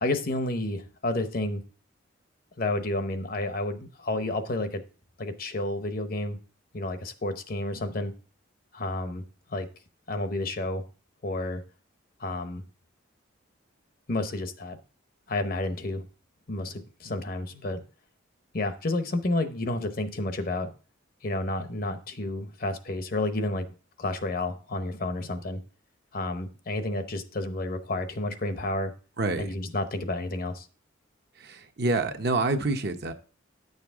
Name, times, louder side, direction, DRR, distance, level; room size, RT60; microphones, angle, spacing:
voice 1, 0.0-1.6 2.6-4.8 5.2-6.4 6.7-8.1 8.7-9.2 9.5-9.7 10.1-10.8 11.2-11.6 12.2-12.6 14.1-14.8 15.3-16.0 16.5-17.8 18.5-20.7 21.2-23.7 24.0-25.6 26.1-28.9 29.4-30.7, left 2 dB, 45° left, 9 dB, 0.8 m, -30 dB
voice 2, 29.2-29.5 31.4-33.1, right 3 dB, 50° right, 6 dB, 0.9 m, -27 dB
9.7 x 6.6 x 3.6 m, 0.36 s
head